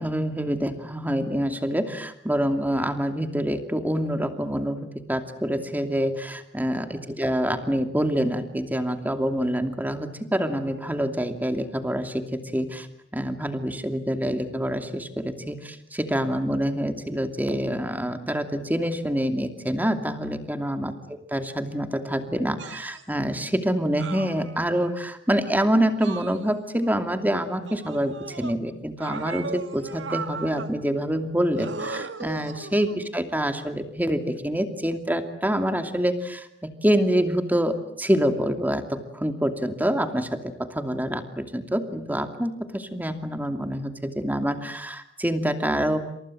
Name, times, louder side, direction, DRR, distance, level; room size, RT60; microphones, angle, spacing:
voice 1, 0.0-12.9 13.1-20.9 21.3-46.2, equal, 10° right, 7 dB, 2.6 m, -26 dB
sound 1, 22.6-23.0 24.0-24.9 26.0-26.9 27.7-28.5 29.0-30.7 31.6-33.1 34.2-34.4, right 4 dB, 75° right, 1.9 m, -37 dB
29.0 x 27.0 x 7.7 m, 0.74 s
head